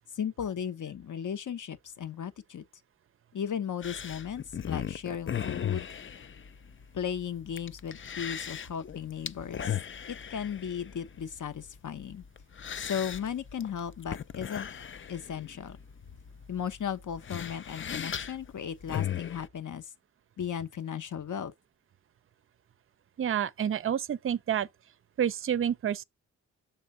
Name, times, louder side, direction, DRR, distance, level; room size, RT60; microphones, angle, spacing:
voice 1, 0.1-2.6 3.3-5.9 6.9-9.8 10.1-12.2 12.8-14.7 15.1-15.8 16.5-19.9 20.4-21.5, left 8 dB, 60° left, 1.0 m, -36 dB
sound 1, 3.8-19.5, left 9 dB, 35° left, 0.5 m, -38 dB
voice 2, 23.2-24.7 25.2-26.0, right 9 dB, 40° right, 0.5 m, -29 dB
7.1 x 3.4 x 5.3 m
supercardioid pair, 45°, 35 cm